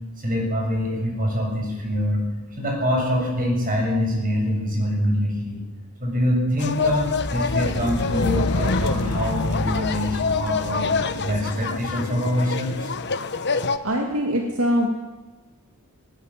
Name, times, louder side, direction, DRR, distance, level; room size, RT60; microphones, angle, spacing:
voice 1, 0.2-2.2 2.6-5.6 6.0-10.9 11.2-12.9, equal, 40° right, 0 dB, 7.8 m, -24 dB
sound 1, 6.6-13.8, left 5 dB, 55° left, 1.2 m, -27 dB
sound 2, 6.8-13.1, left 2 dB, 85° left, 1.5 m, -29 dB
voice 2, 13.8-14.9, equal, 70° right, 1 dB, 2.6 m, -23 dB
20.5 x 19.5 x 7.7 m, 1.2 s
head